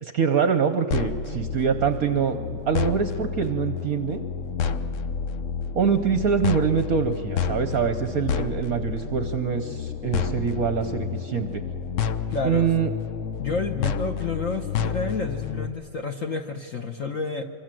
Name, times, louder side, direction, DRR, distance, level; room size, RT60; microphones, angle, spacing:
voice 1, 0.0-4.2 5.7-11.6 12.4-12.9, right 6 dB, 55° right, 9 dB, 1.0 m, -24 dB
sound 1, 0.9-15.7, left 6 dB, 85° left, 0.6 m, -30 dB
voice 2, 12.3-12.7 13.4-17.4, left 4 dB, 50° left, 5 dB, 1.1 m, -29 dB
25.0 x 25.0 x 7.6 m, 2.4 s
omnidirectional pair, 2.3 m